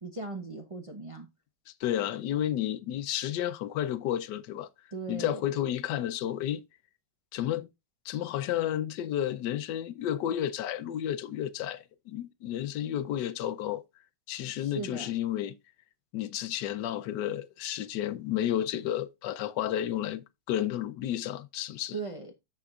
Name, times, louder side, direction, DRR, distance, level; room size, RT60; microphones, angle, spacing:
voice 1, 0.0-1.3 4.9-5.4 14.5-15.1 21.9-22.3, right 3 dB, 25° right, 0.7 m, -38 dB
voice 2, 1.8-4.7 5.1-6.6 7.3-7.7 8.0-13.8 14.3-15.6 16.1-22.0, left 11 dB, 80° left, 1.3 m, -31 dB
14.0 x 4.7 x 2.4 m
omnidirectional pair, 1.9 m